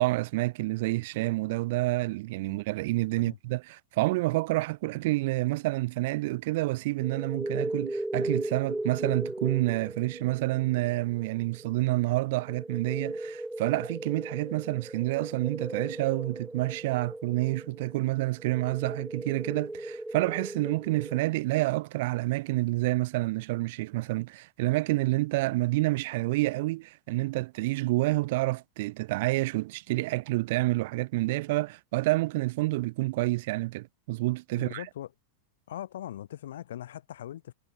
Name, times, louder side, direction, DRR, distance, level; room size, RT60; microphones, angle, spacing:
voice 1, 0.0-34.8, right 20 dB, 50° right, 0.6 m, -28 dB
sound 1, 7.0-21.2, right 1 dB, 5° right, 1.9 m, -37 dB
voice 2, 34.5-35.1 35.7-37.5, left 12 dB, 60° left, 5.5 m, -40 dB
figure-of-eight pair, 90°, 0 cm